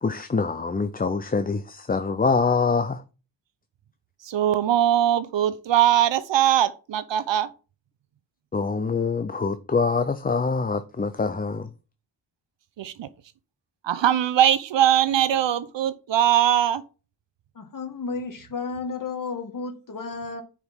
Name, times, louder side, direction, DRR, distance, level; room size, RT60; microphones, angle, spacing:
voice 1, 0.0-3.0 8.5-11.7, left 4 dB, 20° left, 0.5 m, -25 dB
voice 2, 4.2-7.5 12.8-13.1 13.8-16.8, right 11 dB, 75° right, 0.8 m, -21 dB
voice 3, 17.6-20.4, left 4 dB, 45° left, 1.8 m, -32 dB
9.5 x 5.0 x 3.6 m
cardioid pair, 85°, 45 cm